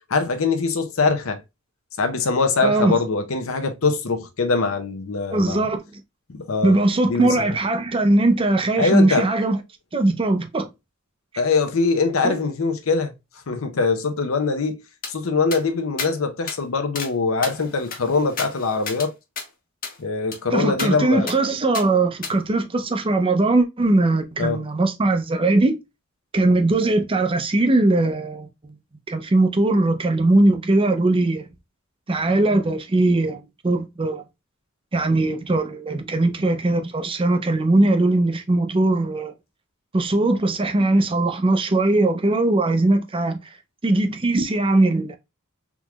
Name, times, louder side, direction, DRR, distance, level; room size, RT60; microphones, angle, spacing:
voice 1, 0.1-1.4 2.0-5.7 6.3-6.7 7.1-7.5 8.8-9.3 11.4-13.1 13.5-14.8 15.1-19.1 20.0-21.3 24.4-24.6, left 4 dB, 75° left, 0.7 m, -22 dB
voice 2, 2.6-3.0 5.3-6.0 6.6-9.6 9.9-10.7 12.2-12.4 20.5-25.7 26.3-28.8 29.1-31.5 32.1-34.2 34.9-39.3 39.9-43.4 43.8-45.2, right 2 dB, 25° right, 0.5 m, -20 dB
sound 1, 15.0-15.1 15.5-15.6 16.0-16.1 16.5-16.6 17.0-17.1 17.4-19.1 19.4-19.5 19.8-20.0 20.3-20.4 20.8-20.9 21.3-21.4 21.7-21.9 22.2-22.3, left 5 dB, 45° left, 0.9 m, -32 dB
3.6 x 3.0 x 2.3 m
head